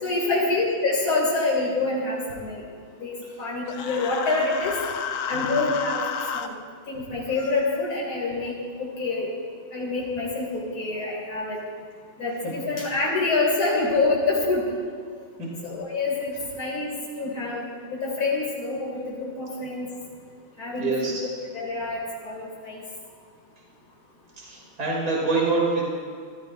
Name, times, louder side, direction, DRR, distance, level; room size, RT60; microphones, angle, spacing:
voice 1, 0.0-2.6 3.0-4.7 5.3-6.0 6.3-6.5 6.9-9.3 9.7-11.6 12.2-14.6 15.6-16.9 17.2-19.9 20.6-21.2 21.5-22.8, left 3 dB, 85° left, -3 dB, 3.5 m, -26 dB
Human voice, 3.7-6.5, left 6 dB, 65° left, 0.8 m, -31 dB
voice 2, 20.8-21.1 24.4-25.9, right 3 dB, 50° right, -3 dB, 3.6 m, -26 dB
24.5 x 15.5 x 2.7 m, 2.1 s
omnidirectional pair, 2.2 m